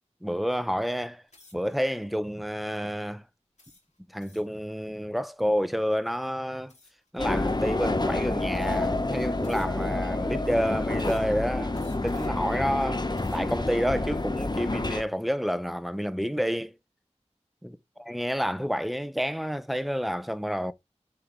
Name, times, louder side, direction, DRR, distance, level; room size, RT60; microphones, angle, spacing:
voice 1, 0.2-1.2 1.5-3.2 4.1-6.7 7.1-11.8 12.0-16.8 17.6-20.7, equal, ahead, 0.7 m, -29 dB
sound 1, 1.3-1.7 2.4-2.6 3.6-4.6 6.7-7.1 7.9-8.0 8.5-9.0 9.4-10.0 10.9-11.4 11.7-12.5 13.0-13.6, left 2 dB, 80° left, 3.1 m, -57 dB
sound 2, 7.2-15.0, left 2 dB, 35° left, 0.9 m, -28 dB
6.1 x 4.8 x 3.5 m
wide cardioid pair, 45°, 12 cm